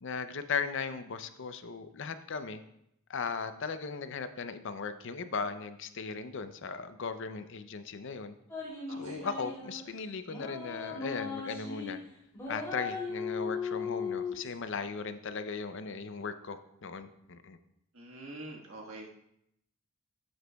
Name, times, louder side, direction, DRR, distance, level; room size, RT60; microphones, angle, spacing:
voice 1, 0.0-2.6 3.1-8.3 9.0-12.0 12.5-17.6, left 5 dB, 60° left, 10 dB, 0.5 m, -37 dB
sound 1, 8.5-9.8 10.3-11.9 12.3-14.4, left 5 dB, 15° left, 2.8 m, -37 dB
voice 2, 8.9-9.3 17.9-19.2, right 2 dB, 75° right, -1 dB, 1.5 m, -46 dB
11.5 x 7.9 x 2.3 m, 0.78 s
head